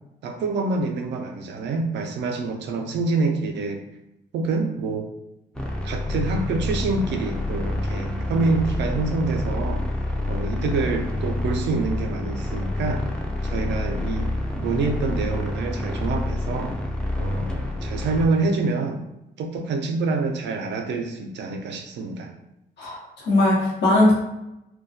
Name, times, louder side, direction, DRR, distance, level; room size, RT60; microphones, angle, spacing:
voice 1, 0.2-3.8 4.3-5.1 5.8-9.9 10.3-13.0 13.4-16.7 17.2-19.0 19.4-22.3, right 3 dB, 70° right, 4 dB, 0.4 m, -26 dB
sound 1, 5.5-18.3, left 1 dB, 5° left, 0.4 m, -28 dB
voice 2, 22.8-24.1, left 1 dB, 70° left, -6 dB, 0.9 m, -19 dB
2.2 x 2.2 x 2.6 m, 0.89 s
cardioid pair, 70°, 19 cm